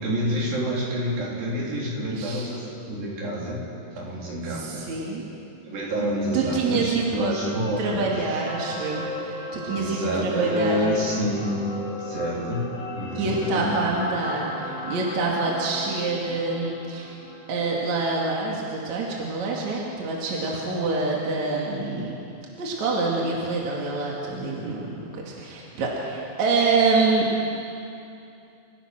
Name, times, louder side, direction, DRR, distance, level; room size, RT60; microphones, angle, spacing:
voice 1, 0.0-3.6 3.9-4.8 5.6-8.8 9.7-11.6 12.0-14.1, equal, 75° right, -5 dB, 5.7 m, -28 dB
voice 2, 2.1-2.5 4.5-5.2 6.3-7.3 7.8-10.9 13.2-17.1 17.5-22.1 22.6-24.8 25.1-27.3, right 3 dB, 55° right, -3 dB, 3.4 m, -26 dB
sound 1, 7.0-19.3 19.6-19.8, left 1 dB, 40° left, 5.5 m, -37 dB
28.0 x 16.0 x 6.1 m, 2.7 s
omnidirectional pair, 4.1 m